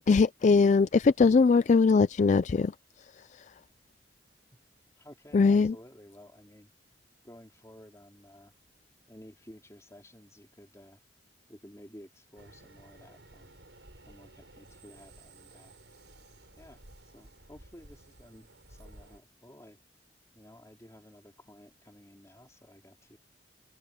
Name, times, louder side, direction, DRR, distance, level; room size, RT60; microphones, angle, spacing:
voice 1, 0.0-2.7 3.3-3.4 5.3-5.7, left 4 dB, 40° left, 0.3 m, -21 dB
voice 2, 5.0-6.7 7.2-8.5 9.1-11.0 11.5-13.5 14.0-15.8 16.6-16.8 17.1-19.8 20.3-23.2, equal, 15° left, 4.2 m, -53 dB
sound 1, 12.4-19.2, right 2 dB, 80° right, 6.3 m, -54 dB
head